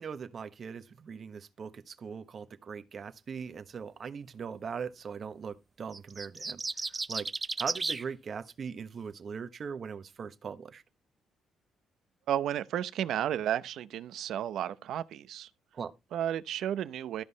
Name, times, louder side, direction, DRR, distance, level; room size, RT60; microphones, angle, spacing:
voice 1, 0.0-7.3 7.6-10.8 15.7-15.9, right 6 dB, 50° right, 1.1 m, -40 dB
sound 1, 5.9-8.0, right 3 dB, 25° right, 0.6 m, -34 dB
voice 2, 12.3-15.5 16.1-17.2, right 10 dB, 75° right, 0.7 m, -32 dB
13.0 x 5.4 x 4.0 m
cardioid pair, 90°, 0 cm